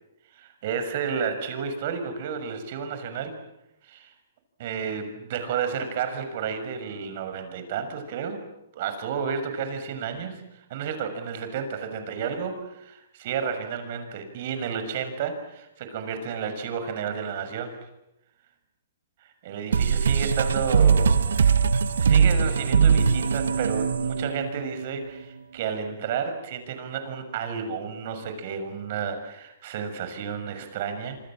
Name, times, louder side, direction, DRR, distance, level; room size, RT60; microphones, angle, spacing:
voice 1, 0.3-3.3 3.8-4.1 4.6-8.4 8.7-17.8 19.2-21.1 22.0-31.2, right 6 dB, 50° right, 8 dB, 6.3 m, -31 dB
sound 1, 19.7-25.0, right 6 dB, 80° right, 1.6 m, -21 dB
27.0 x 26.0 x 7.5 m, 0.88 s
hypercardioid pair, 145°, 0 cm